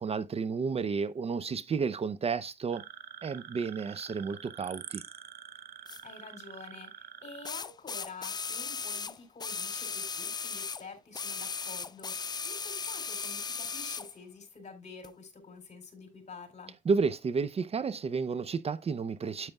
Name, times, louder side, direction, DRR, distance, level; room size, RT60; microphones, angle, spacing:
voice 1, 0.0-2.8 3.2-5.0 16.8-19.5, right 5 dB, 40° right, 0.6 m, -31 dB
sound 1, 2.7-7.5, right 9 dB, 70° right, 0.9 m, -46 dB
sound 2, 5.9-6.0 7.4-10.8 11.1-14.1 15.0-15.1, left 5 dB, 25° left, 0.4 m, -37 dB
voice 2, 6.0-16.7, left 4 dB, 45° left, 4.1 m, -48 dB
9.2 x 8.9 x 2.3 m
cardioid pair, 75°, 16 cm